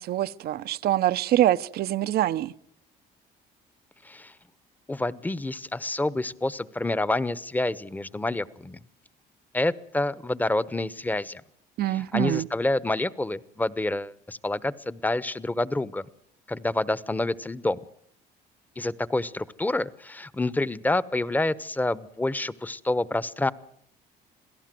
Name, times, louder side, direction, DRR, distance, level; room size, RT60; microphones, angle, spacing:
voice 1, 0.0-2.5 11.8-12.5, right 13 dB, 65° right, 0.9 m, -24 dB
voice 2, 4.9-8.8 9.5-11.4 11.9-16.1 16.5-17.8 18.8-23.5, left 2 dB, 10° left, 1.0 m, -28 dB
27.5 x 17.0 x 7.7 m
cardioid pair, 110°, 17 cm